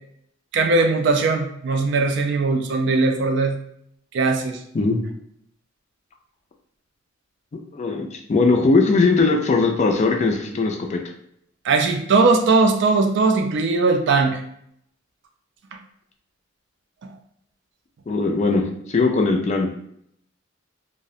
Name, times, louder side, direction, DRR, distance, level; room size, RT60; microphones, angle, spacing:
voice 1, 0.5-3.6 4.1-4.6 11.6-14.4, right 3 dB, 60° right, 5 dB, 0.4 m, -19 dB
voice 2, 7.7-11.0 18.1-19.7, left 3 dB, 35° left, 2 dB, 0.3 m, -19 dB
2.4 x 2.0 x 2.7 m, 0.71 s
head